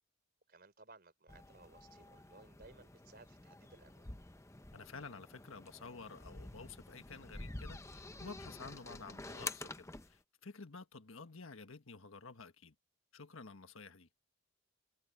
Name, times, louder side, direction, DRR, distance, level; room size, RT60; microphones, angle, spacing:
voice 1, 0.5-4.1, right 3 dB, 45° right, 4.2 m, -60 dB
sound 1, 1.3-10.2, left 2 dB, 15° left, 0.7 m, -49 dB
voice 2, 4.7-12.7 13.1-14.1, left 4 dB, 75° left, 1.5 m, -51 dB
head